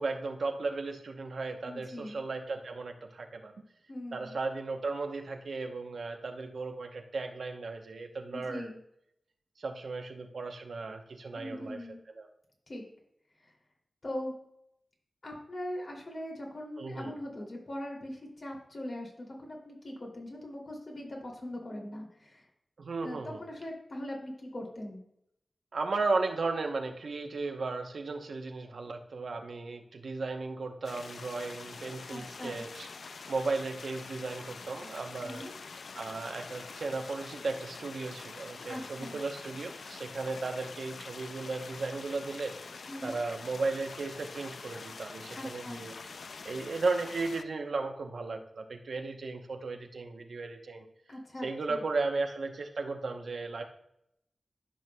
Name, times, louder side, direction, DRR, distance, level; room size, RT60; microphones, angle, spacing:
voice 1, 0.0-3.5 4.1-8.7 9.6-11.9 12.1-12.3 16.8-17.1 22.8-23.4 25.7-32.9 33.3-35.4 35.9-42.5 43.0-45.9 46.4-50.8 51.4-53.6, right 3 dB, 80° right, 4 dB, 0.8 m, -35 dB
voice 2, 1.6-2.2 3.9-4.3 8.3-8.8 11.3-12.0 12.7-12.8 13.4-13.5 14.0-14.3 15.2-22.5 23.0-25.0 32.1-32.6 35.2-35.5 38.7-39.2 42.9-43.2 45.3-45.8 51.1-51.8, left 1 dB, 65° left, -1 dB, 2.6 m, -41 dB
sound 1, 30.8-47.4, left 4 dB, 85° left, 0.3 m, -45 dB
12.5 x 5.9 x 2.2 m, 0.77 s
cardioid pair, 40°, 0 cm